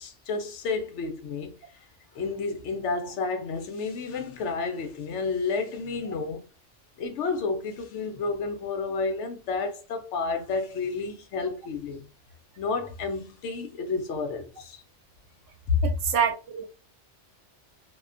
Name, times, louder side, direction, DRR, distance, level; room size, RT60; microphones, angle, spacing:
voice 1, 0.0-1.6 2.1-6.5 7.0-12.1 12.6-14.8 15.7-15.8, left 4 dB, 75° left, 0.9 m, -31 dB
voice 2, 15.8-16.7, right 7 dB, 90° right, 1.0 m, -26 dB
2.4 x 2.2 x 2.4 m
omnidirectional pair, 1.2 m